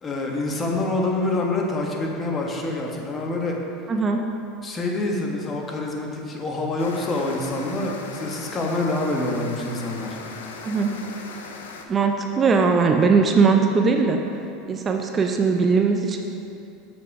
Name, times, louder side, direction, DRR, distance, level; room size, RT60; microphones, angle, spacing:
voice 1, 0.0-3.6 4.6-10.2, left 2 dB, 30° left, 0 dB, 1.4 m, -26 dB
voice 2, 3.9-4.3 10.6-10.9 11.9-14.2 14.7-16.2, right 4 dB, 30° right, 4 dB, 0.6 m, -20 dB
sound 1, 6.8-11.8, left 4 dB, 85° left, 0.7 m, -39 dB
7.6 x 6.1 x 4.8 m, 2.7 s
hypercardioid pair, 95°, 0 cm